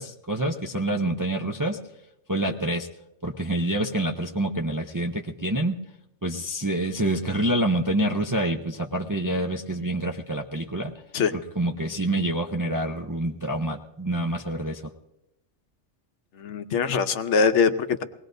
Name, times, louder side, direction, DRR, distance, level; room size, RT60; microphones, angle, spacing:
voice 1, 0.0-1.8 2.3-2.9 3.2-5.8 6.2-10.9 11.6-14.8, right 1 dB, 25° right, 3 dB, 0.4 m, -27 dB
voice 2, 16.3-18.0, left 5 dB, 75° left, 10 dB, 1.0 m, -23 dB
23.0 x 19.0 x 2.6 m, 0.93 s
omnidirectional pair, 1.3 m